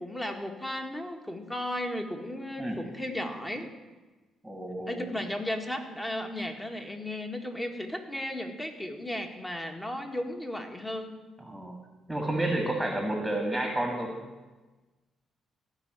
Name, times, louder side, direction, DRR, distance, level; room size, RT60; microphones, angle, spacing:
voice 1, 0.0-3.7 4.9-11.1, left 1 dB, 15° left, 4 dB, 1.8 m, -35 dB
voice 2, 4.4-5.0 11.4-11.8 12.1-14.2, right 1 dB, 5° right, 3 dB, 1.9 m, -30 dB
15.0 x 5.7 x 9.0 m, 1.2 s
cardioid pair, 90°, 0 cm